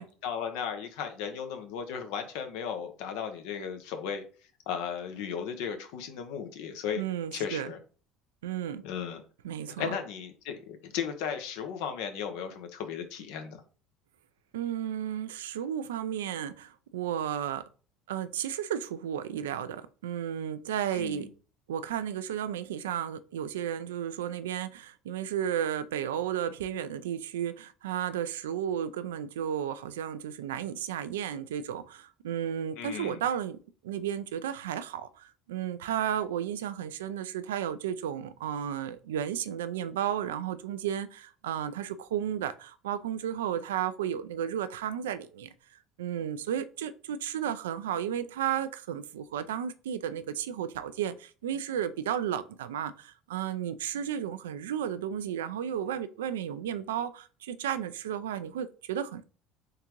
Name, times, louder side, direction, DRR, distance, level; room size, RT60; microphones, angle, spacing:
voice 1, 0.2-4.2 4.7-7.0 7.3-7.8 8.8-9.2 9.8-13.6 20.9-21.3 32.8-33.2, left 7 dB, 75° left, 0.8 m, -35 dB
voice 2, 7.0-7.7 8.4-8.8 9.4-10.0 14.5-17.6 18.1-21.3 21.7-33.6 33.8-59.2, right 9 dB, 90° right, 0.3 m, -33 dB
3.7 x 3.5 x 3.0 m
hypercardioid pair, 80°, 0 cm